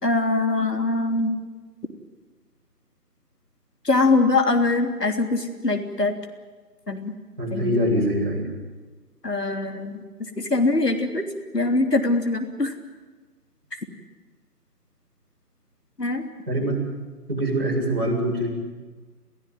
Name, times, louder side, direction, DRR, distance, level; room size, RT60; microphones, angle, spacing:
voice 1, 0.0-1.4 3.8-6.1 6.9-7.1 7.5-7.8 9.2-10.0 10.5-11.2 11.5-12.7 16.0-16.2, left 3 dB, 80° left, 4 dB, 3.4 m, -22 dB
voice 2, 7.4-8.5 16.5-16.9 17.3-18.5, right 1 dB, 35° right, -3 dB, 7.7 m, -24 dB
29.0 x 15.5 x 9.4 m, 1.3 s
figure-of-eight pair, 165°, 47 cm